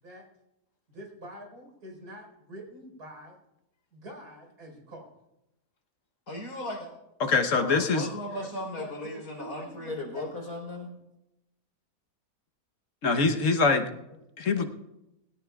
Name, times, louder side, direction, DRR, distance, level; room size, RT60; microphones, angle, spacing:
voice 1, 0.9-3.4 3.9-5.1 8.3-10.3 14.5-14.7, equal, 80° right, 0 dB, 5.1 m, -45 dB
voice 2, 6.3-6.9 7.5-10.9, left 1 dB, 90° left, 1 dB, 4.5 m, -36 dB
voice 3, 7.2-8.1 13.0-13.8 14.4-14.6, left 4 dB, 60° left, 5 dB, 1.4 m, -24 dB
20.5 x 17.0 x 2.4 m, 0.89 s
omnidirectional pair, 1.6 m